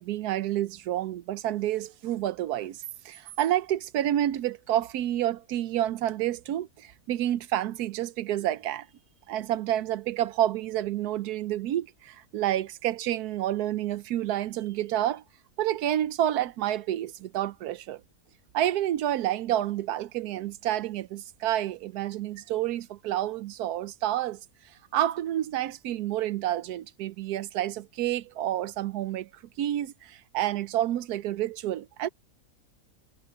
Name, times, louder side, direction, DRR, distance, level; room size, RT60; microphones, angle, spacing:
voice 1, 0.0-8.9 9.3-15.2 15.6-18.0 18.5-24.4 24.9-29.3 29.6-32.1, right 12 dB, 85° right, 1.2 m, -29 dB
omnidirectional pair, 1.6 m